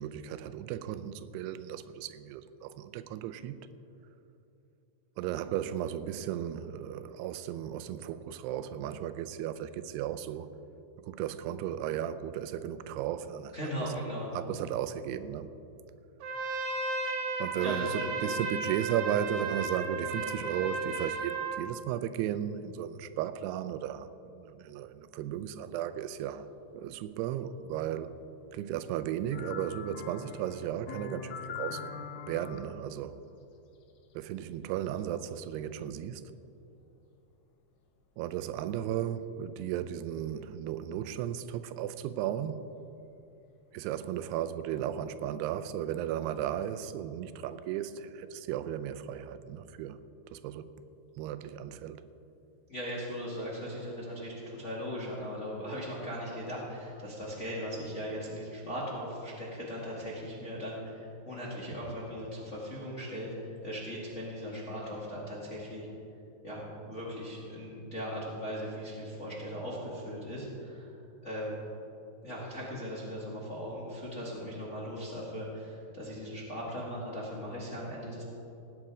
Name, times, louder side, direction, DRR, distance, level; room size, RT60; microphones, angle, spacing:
voice 1, 0.0-3.6 5.2-10.5 11.0-13.6 13.8-13.9 14.3-15.5 17.4-26.5 26.7-28.1 28.5-31.8 32.3-33.2 34.2-36.2 38.2-42.5 43.7-50.0 50.3-50.7 51.2-52.1, right 10 dB, 85° right, 13 dB, 2.6 m, -35 dB
voice 2, 13.5-14.4 17.6-18.1 52.7-65.9 66.4-70.9 71.2-71.6 72.2-78.2, equal, 40° left, -6 dB, 1.0 m, -38 dB
Trumpet, 16.2-21.6, right 3 dB, 65° right, 1.9 m, -34 dB
sound 1, 29.3-32.6 35.4-35.5, left 7 dB, 70° left, 2.4 m, -42 dB
17.5 x 9.0 x 4.9 m, 2.9 s
omnidirectional pair, 4.7 m